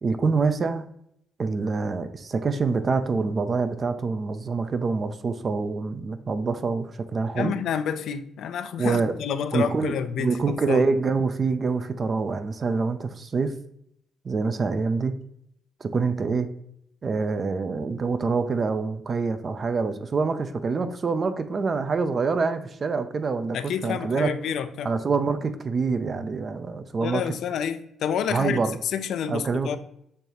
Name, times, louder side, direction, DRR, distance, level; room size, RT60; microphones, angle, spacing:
voice 1, 0.0-0.9 1.4-7.5 8.8-9.1 9.5-13.5 14.2-15.1 15.8-16.5 17.0-24.3 24.8-27.2 28.3-28.8 29.3-29.8, right 4 dB, 40° right, 10 dB, 0.5 m, -26 dB
voice 2, 7.3-10.9 23.5-24.9 27.0-29.8, left 8 dB, 75° left, 11 dB, 0.4 m, -29 dB
6.5 x 2.7 x 2.9 m, 0.74 s
cardioid pair, 90°, 0 cm